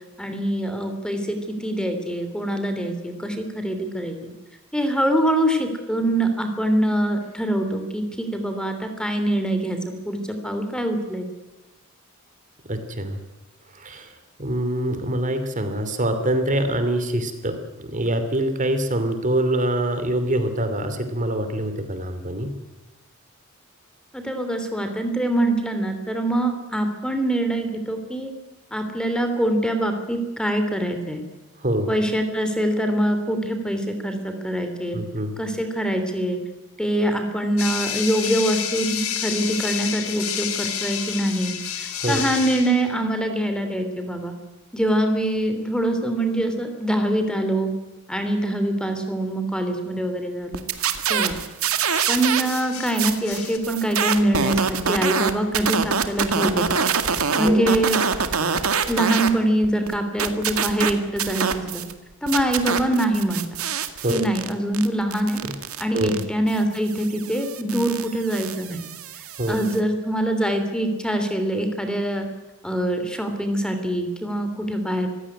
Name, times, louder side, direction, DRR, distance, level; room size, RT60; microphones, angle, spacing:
voice 1, 0.2-4.3 4.7-9.8 10.1-11.3 24.1-28.3 28.7-31.2 31.9-35.0 35.4-36.4 36.8-44.3 44.7-47.7 48.1-50.6 51.1-51.4 52.1-56.6 57.1-58.0 58.9-61.8 62.2-63.5 64.1-65.4 65.8-68.8 69.5-72.3 72.6-75.1, right 1 dB, 5° left, 6 dB, 3.0 m, -24 dB
voice 2, 12.6-13.2 13.7-14.1 14.4-22.5 31.6-31.9 34.9-35.3 42.0-42.2 57.4-57.6 64.0-64.3 65.4-65.5 65.9-66.2 69.4-69.6, right 1 dB, 35° right, 9 dB, 2.8 m, -25 dB
sound 1, 37.6-42.9 46.4-46.7 51.9-53.6, left 8 dB, 85° left, 3.1 m, -30 dB
sound 2, 50.5-52.6 52.9-59.3 59.6-61.9 62.3-69.8, right 6 dB, 85° right, 2.0 m, -25 dB
24.5 x 16.5 x 9.8 m, 1.1 s
head